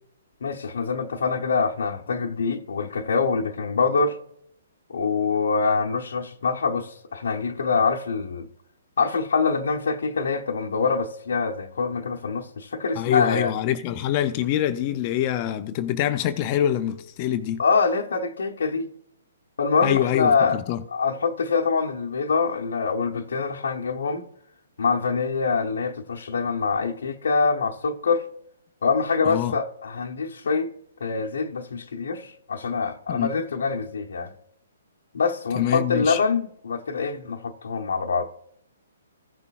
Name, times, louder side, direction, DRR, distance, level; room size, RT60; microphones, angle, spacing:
voice 1, 0.4-4.2 4.9-8.5 9.0-13.5 17.6-18.9 19.6-20.6 20.9-24.2 24.8-28.2 28.8-30.7 31.0-34.3 35.1-38.3, left 4 dB, 60° left, 0.9 m, -25 dB
voice 2, 13.0-17.6 19.8-20.8 29.2-29.5 33.1-33.4 35.6-36.2, left 11 dB, 35° left, 0.6 m, -25 dB
15.5 x 6.7 x 2.4 m
figure-of-eight pair, 125°, 0 cm